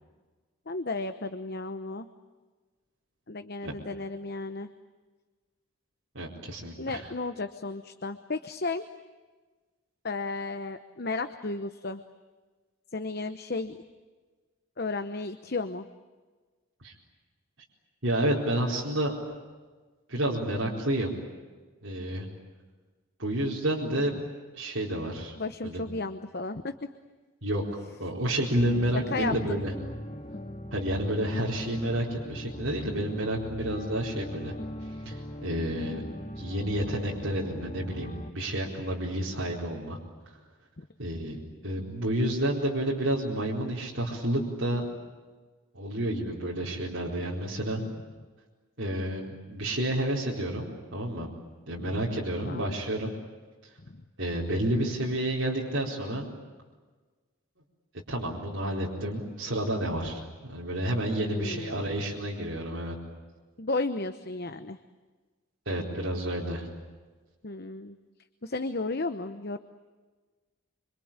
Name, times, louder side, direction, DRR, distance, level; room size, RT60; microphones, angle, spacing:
voice 1, 0.7-2.1 3.3-4.7 6.8-8.8 10.0-12.0 12.9-13.8 14.8-15.9 24.1-24.2 25.4-26.7 29.1-29.6 40.8-40.9 51.7-51.9 52.4-52.8 53.9-54.0 61.3-61.8 63.6-64.8 67.4-68.0 68.4-69.6, left 3 dB, 50° left, 9 dB, 0.9 m, -33 dB
voice 2, 6.1-7.0 16.8-16.9 18.0-19.1 20.1-21.2 21.8-22.3 23.2-24.2 24.5-25.3 25.6-25.8 27.4-27.6 28.0-29.7 30.7-34.5 35.0-36.0 36.4-40.0 41.0-44.9 45.7-47.8 48.8-51.3 51.7-53.1 54.2-56.3 58.1-60.2 60.5-62.9 65.7-66.7, right 1 dB, 60° right, -4 dB, 4.5 m, -30 dB
sound 1, 28.5-38.3, equal, 30° left, 1.7 m, -39 dB
26.5 x 25.0 x 8.9 m, 1.3 s
head